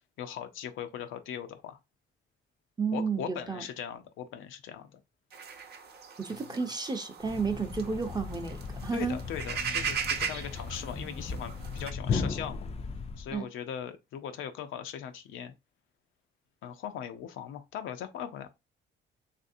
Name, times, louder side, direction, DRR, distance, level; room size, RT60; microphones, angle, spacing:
voice 1, 0.2-1.8 2.9-5.0 6.3-6.5 8.9-12.7 13.2-15.5 16.6-18.5, left 9 dB, 85° left, 0.6 m, -39 dB
voice 2, 2.8-3.6 6.2-9.2 13.3-13.5, right 5 dB, 20° right, 0.7 m, -32 dB
sound 1, 5.3-11.9, right 6 dB, 55° right, 0.7 m, -38 dB
Thump thud, 7.2-13.4, left 5 dB, 30° left, 0.4 m, -36 dB
3.3 x 2.6 x 2.6 m
cardioid pair, 90°, 20 cm